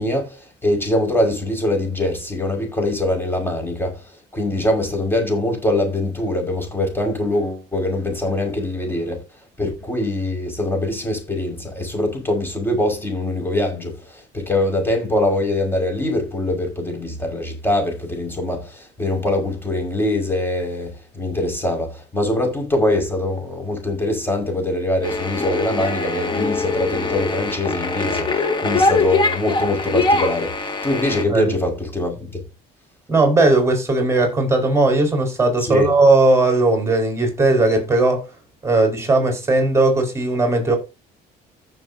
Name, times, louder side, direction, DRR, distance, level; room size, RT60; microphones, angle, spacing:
voice 1, 0.0-4.0 4.3-9.2 9.6-32.4 35.6-35.9, left 1 dB, 10° left, 5.6 m, -23 dB
sound 1, 25.0-31.2, left 3 dB, 25° left, 2.1 m, -22 dB
voice 2, 33.1-38.3 38.6-40.8, right 2 dB, 15° right, 5.1 m, -17 dB
15.0 x 7.1 x 2.8 m
cardioid pair, 110°, 17 cm